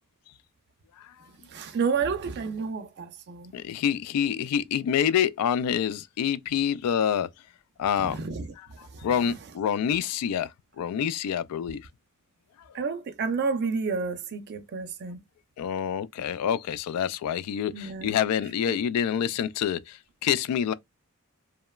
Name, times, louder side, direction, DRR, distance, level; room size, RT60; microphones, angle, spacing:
voice 1, 1.5-3.5 8.0-8.5 8.8-9.4 12.7-15.2 17.7-18.1 18.7-18.8, right 5 dB, 50° right, 0.4 m, -30 dB
voice 2, 3.5-7.3 7.8-8.2 9.0-10.5 10.8-11.8 15.6-20.7, left 8 dB, 85° left, 0.3 m, -27 dB
2.9 x 2.1 x 2.2 m
head